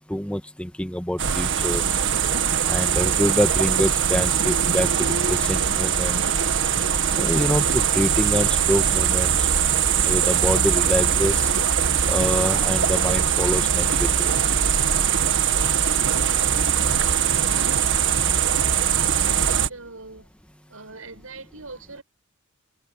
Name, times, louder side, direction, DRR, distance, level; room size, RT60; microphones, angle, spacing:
voice 1, 0.0-1.8 2.6-6.2 7.1-9.5 10.0-11.5 12.1-14.3, equal, 5° left, 2.0 m, -26 dB
sound 1, 1.2-19.7, right 8 dB, 65° right, 1.7 m, -21 dB
voice 2, 18.4-18.9 19.3-20.3 20.7-22.0, right 3 dB, 90° right, 7.3 m, -41 dB
head